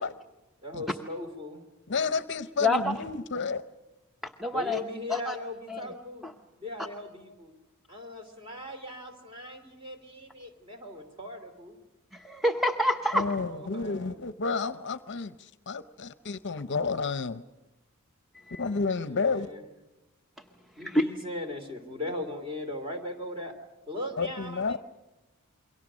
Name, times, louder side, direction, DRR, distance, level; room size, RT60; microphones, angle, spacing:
voice 1, 0.6-1.6 4.5-6.3 6.6-7.5 7.9-11.8 13.2-14.2 19.0-19.6 20.8-23.6 23.9-24.8, left 1 dB, 25° right, 5 dB, 3.0 m, -39 dB
voice 2, 1.9-3.6 13.1-17.4 18.6-19.5 24.2-24.8, left 4 dB, 55° left, 12 dB, 0.7 m, -30 dB
voice 3, 2.6-2.9 4.2-4.8 5.1-5.4 5.7-5.8 6.2-6.3 12.1-13.3 18.4-18.6 20.8-21.0, left 1 dB, ahead, 6 dB, 0.8 m, -27 dB
28.0 x 23.0 x 6.3 m, 1.0 s
head